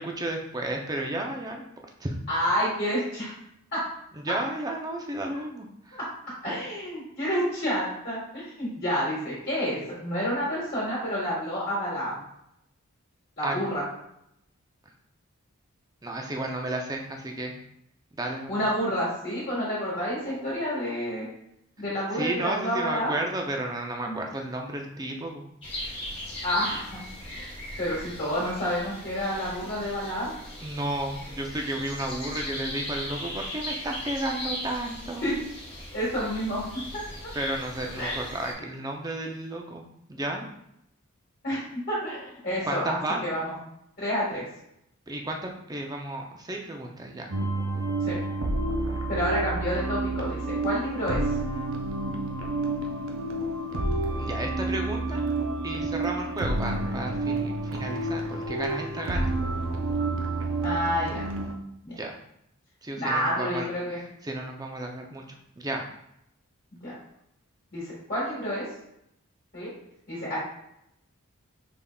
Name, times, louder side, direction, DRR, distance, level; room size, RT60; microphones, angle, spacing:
voice 1, 0.0-1.7 2.0-2.1 4.2-6.0 13.4-13.6 16.0-17.5 18.2-18.6 22.1-25.5 30.6-35.3 37.3-39.8 40.1-40.5 42.6-43.2 45.1-47.3 54.2-55.2 55.6-59.3 62.0-62.2 62.8-63.7 64.2-65.2 65.6-65.8, right 1 dB, 15° right, 2 dB, 0.4 m, -32 dB
voice 2, 2.3-3.3 3.7-3.8 5.9-6.0 6.4-12.1 13.4-13.8 18.5-21.3 21.8-23.1 24.1-24.2 26.4-27.0 27.3-27.4 27.8-30.4 35.2-35.4 35.9-36.7 38.0-38.2 41.4-41.6 41.9-43.5 44.0-44.4 48.0-48.2 49.1-51.2 60.6-61.3 61.8-61.9 63.0-64.0 66.8-66.9 67.7-68.6 69.5-69.7 70.1-70.4, equal, 45° left, -8 dB, 1.4 m, -29 dB
sound 1, 25.6-38.5, left 1 dB, 25° left, 1.2 m, -38 dB
sound 2, 47.3-61.5, right 2 dB, 65° right, 0.6 m, -29 dB
5.2 x 3.5 x 2.2 m, 0.79 s
head